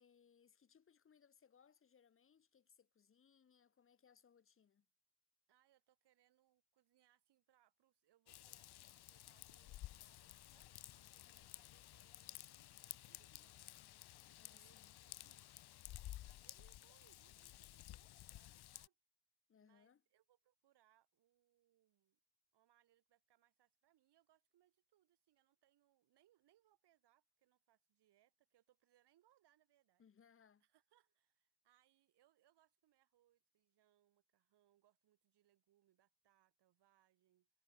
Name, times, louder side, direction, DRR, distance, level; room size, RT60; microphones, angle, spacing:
voice 1, 0.0-4.8 14.2-15.0 19.5-20.0 30.0-30.6, left 7 dB, 30° left, 1.6 m, -70 dB
voice 2, 5.5-15.5 16.2-19.0 19.6-22.2 22.5-30.0 30.6-37.5, right 13 dB, 90° right, 5.4 m, -77 dB
Raindrop / Vehicle horn car horn honking / Trickle dribble, 8.3-18.9, left 14 dB, 70° left, 1.3 m, -55 dB
cardioid pair, 170°, 39 cm